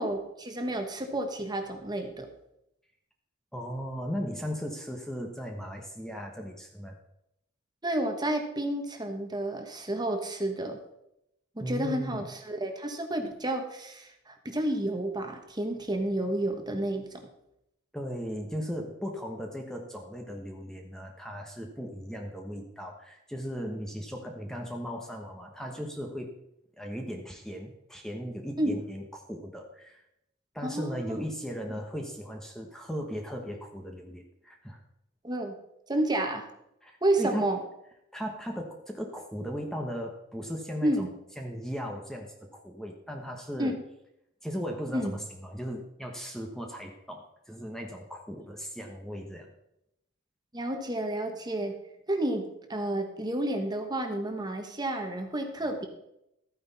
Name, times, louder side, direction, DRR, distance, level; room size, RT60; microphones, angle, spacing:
voice 1, 0.0-2.3 7.8-10.8 11.6-17.2 28.6-28.8 30.6-31.2 35.2-35.6 35.9-36.5 37.0-37.6 40.8-41.1 43.6-43.8 44.9-45.1 50.5-51.8 52.1-55.9, right 1 dB, 20° right, 5 dB, 1.3 m, -30 dB
voice 2, 3.5-7.0 11.6-12.3 17.9-26.4 26.7-30.0 30.5-34.8 36.8-37.5 38.1-41.0 41.4-43.7 44.4-49.5, equal, ahead, 2 dB, 1.1 m, -37 dB
13.5 x 9.5 x 4.2 m, 0.81 s
head